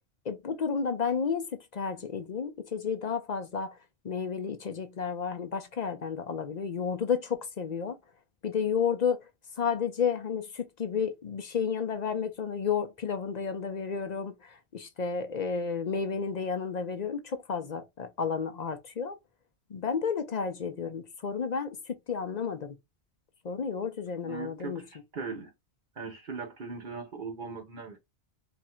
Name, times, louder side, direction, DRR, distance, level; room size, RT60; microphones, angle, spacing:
voice 1, 0.2-3.8 4.0-8.0 8.4-19.2 19.7-22.8 23.4-24.8, left 6 dB, 50° left, 0.6 m, -32 dB
voice 2, 24.2-24.8 25.1-25.5 26.0-28.0, right 4 dB, 55° right, 0.9 m, -39 dB
3.5 x 2.5 x 4.2 m
omnidirectional pair, 1.1 m